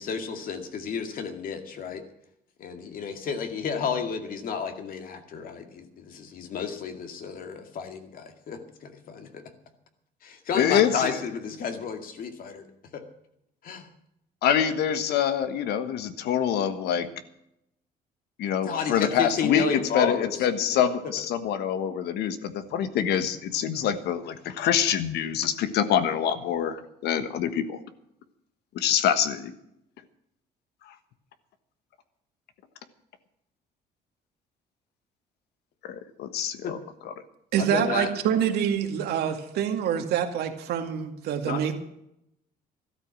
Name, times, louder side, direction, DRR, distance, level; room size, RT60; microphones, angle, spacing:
voice 1, 0.0-2.0 2.6-9.4 10.2-12.6 12.9-13.0 13.6-13.9 18.6-20.5 20.8-20.9 36.6-36.7 37.6-38.1 41.4-41.6, left 6 dB, 55° left, 6 dB, 2.3 m, -31 dB
voice 2, 10.5-11.2 14.4-17.1 18.4-22.3 22.7-26.8 27.0-27.8 28.7-29.5 35.9-36.8 37.0-37.1, left 9 dB, 75° left, 11 dB, 1.4 m, -25 dB
voice 3, 37.5-41.8, right 9 dB, 75° right, 5 dB, 2.1 m, -26 dB
13.0 x 13.0 x 6.2 m, 0.79 s
cardioid pair, 110°, 17 cm